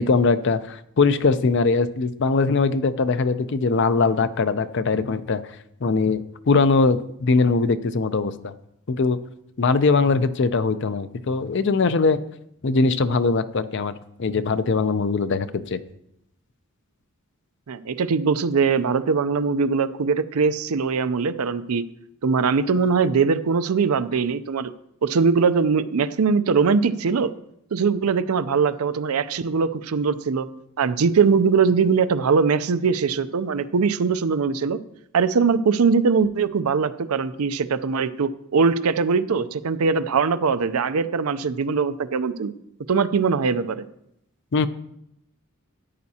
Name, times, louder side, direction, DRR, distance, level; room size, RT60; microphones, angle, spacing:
voice 1, 0.0-5.4 5.8-8.5 8.9-9.2 9.6-12.2 12.6-13.9 14.2-15.8 44.5-44.7, left 4 dB, 55° left, 13 dB, 0.5 m, -21 dB
voice 2, 17.7-21.8 22.2-24.7 25.0-27.3 27.7-30.5 30.8-34.8 35.1-42.5 42.9-43.8, right 5 dB, 90° right, 13 dB, 0.5 m, -21 dB
13.5 x 9.5 x 2.8 m, 0.78 s
head